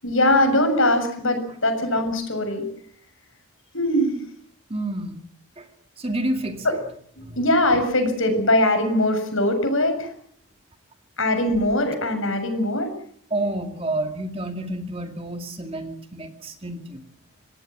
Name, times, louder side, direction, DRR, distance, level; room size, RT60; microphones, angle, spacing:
voice 1, 0.0-2.6 3.7-4.2 6.6-6.8 7.2-10.1 11.2-12.9, left 1 dB, 60° left, 7 dB, 7.0 m, -21 dB
voice 2, 4.7-5.2 5.6-5.7 6.0-6.8 7.2-7.4 13.3-17.0, right 1 dB, 25° right, 6 dB, 2.3 m, -29 dB
27.0 x 18.5 x 7.7 m, 0.64 s
head